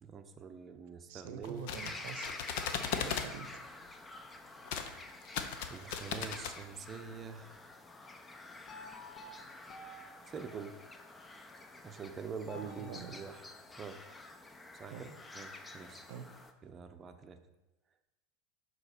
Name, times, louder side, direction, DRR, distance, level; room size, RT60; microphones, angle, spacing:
voice 1, 0.0-1.6 3.8-3.9 5.7-7.7 10.3-10.8 11.8-13.4 13.8-14.0 14.7-16.0 16.6-17.4, right 5 dB, 30° right, 7 dB, 0.7 m, -45 dB
voice 2, 1.1-2.3 3.0-3.6 12.5-13.2 14.9-15.0 16.1-16.3, right 8 dB, 65° right, 9 dB, 0.7 m, -46 dB
sound 1, 1.4-3.3 4.7-4.9 5.2-6.6, left 7 dB, 65° left, 0.6 m, -37 dB
sound 2, 1.7-16.5, left 2 dB, 15° left, 0.7 m, -49 dB
sound 3, 8.7-11.3 12.4-14.2, left 1 dB, 45° left, 1.0 m, -54 dB
6.8 x 4.4 x 4.3 m, 1.0 s
hypercardioid pair, 95°, 0 cm